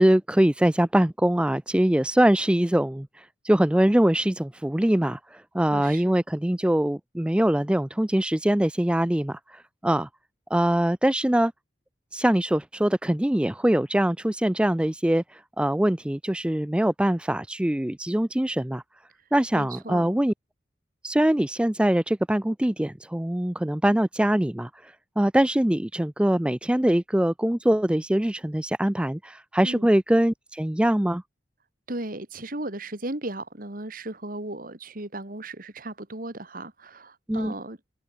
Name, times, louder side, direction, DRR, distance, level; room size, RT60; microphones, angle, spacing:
voice 1, 0.0-10.1 10.5-11.5 12.1-18.8 19.3-20.3 21.0-31.2 37.3-37.5, right 1 dB, 5° right, 0.4 m, -23 dB
voice 2, 5.7-6.2 19.5-20.2 29.6-29.9 31.9-37.8, right 2 dB, 45° right, 2.4 m, -36 dB
head